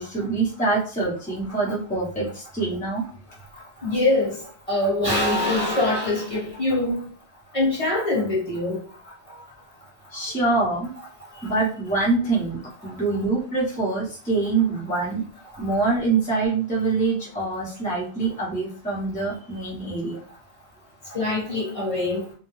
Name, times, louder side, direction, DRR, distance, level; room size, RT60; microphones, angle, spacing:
voice 1, 0.0-3.0 10.1-10.9 11.4-15.2 15.6-20.2, right 3 dB, 10° left, 0.7 m, -25 dB
voice 2, 3.8-4.4 4.7-7.0 7.5-8.8 21.1-22.2, left 2 dB, 35° left, 1.0 m, -23 dB
2.3 x 2.1 x 3.0 m
omnidirectional pair, 1.1 m